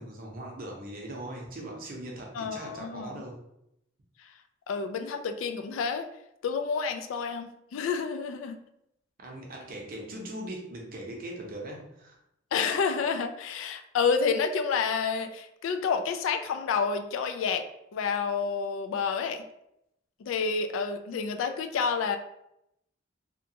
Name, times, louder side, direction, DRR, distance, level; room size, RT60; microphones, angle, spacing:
voice 1, 0.0-3.4 9.2-12.2, right 1 dB, 45° right, 0 dB, 0.6 m, -40 dB
voice 2, 2.3-3.2 4.7-6.1 6.4-8.6 12.5-17.6 17.9-19.4 20.2-22.2, left 5 dB, 85° left, 7 dB, 0.3 m, -29 dB
2.8 x 2.2 x 2.7 m, 0.80 s
head